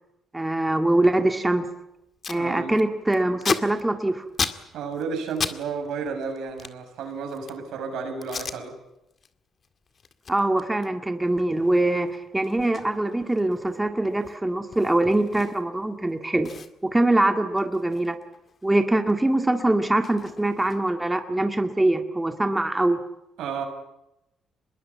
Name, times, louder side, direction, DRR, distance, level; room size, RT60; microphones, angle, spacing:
voice 1, 0.3-1.7 2.3-4.3 10.3-16.5 16.8-18.2 18.6-23.0, right 1 dB, 10° right, 5 dB, 2.0 m, -23 dB
Packing tape duct tape, 1.7-1.8 2.0-2.4 2.7-5.6 5.8-7.7 8.2-8.6 9.0-9.3 9.6-16.1 16.4-18.8 19.1-21.1, left 5 dB, 45° left, 2.0 m, -35 dB
voice 2, 2.3-2.8 4.7-8.7 23.4-23.6, right 5 dB, 85° right, 5 dB, 6.7 m, -32 dB
25.0 x 21.0 x 8.5 m, 0.89 s
cardioid pair, 90°, 0 cm